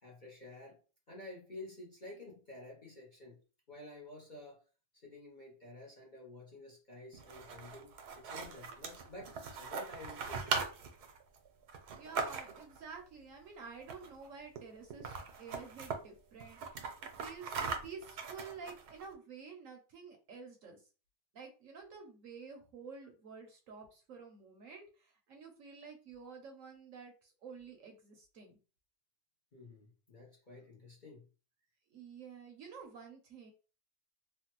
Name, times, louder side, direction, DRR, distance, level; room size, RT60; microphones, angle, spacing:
voice 1, 0.0-0.8 1.1-3.4 3.7-4.6 4.9-10.6 29.5-31.3, left 2 dB, 40° left, -3 dB, 0.7 m, -51 dB
sound 1, 7.1-12.8 13.8-14.3 14.6-14.7 14.9-16.0 16.4-19.1, right 5 dB, 85° right, 1.2 m, -40 dB
voice 2, 11.9-16.9 17.2-17.5 17.8-20.8 21.3-28.6 31.9-33.5, right 5 dB, 65° right, 3 dB, 0.9 m, -50 dB
3.2 x 2.2 x 2.9 m, 0.34 s
omnidirectional pair, 1.6 m